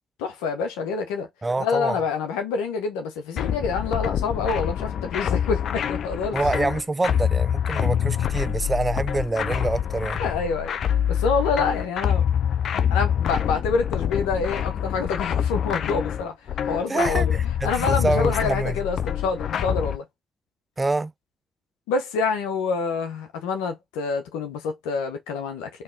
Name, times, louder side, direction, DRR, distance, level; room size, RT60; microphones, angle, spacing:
voice 1, 0.2-1.3 1.6-6.4 10.2-10.8 11.1-12.2 12.9-16.3 16.7-17.4 17.6-20.0 21.9-25.7, left 5 dB, 85° left, 1.0 m, -27 dB
voice 2, 1.4-2.0 6.3-10.2 16.9-17.3 17.6-18.8 20.8-21.1, right 2 dB, 30° right, 0.5 m, -26 dB
sound 1, 3.4-20.0, left 9 dB, 70° left, 0.5 m, -26 dB
4.1 x 3.3 x 3.8 m
hypercardioid pair, 45°, 0 cm